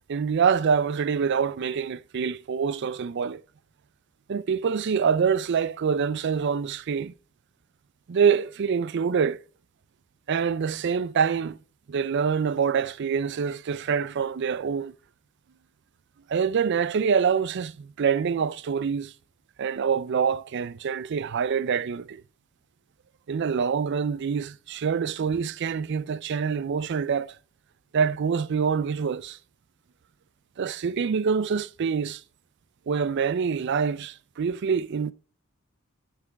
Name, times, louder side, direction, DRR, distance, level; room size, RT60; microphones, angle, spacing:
voice 1, 0.1-3.4 4.3-7.1 8.1-9.4 10.3-11.6 11.9-14.9 16.3-19.1 19.6-22.2 23.3-27.4 27.9-29.4 30.6-32.2 32.9-35.1, right 6 dB, 55° right, 0.4 m, -25 dB
8.0 x 6.0 x 4.6 m
head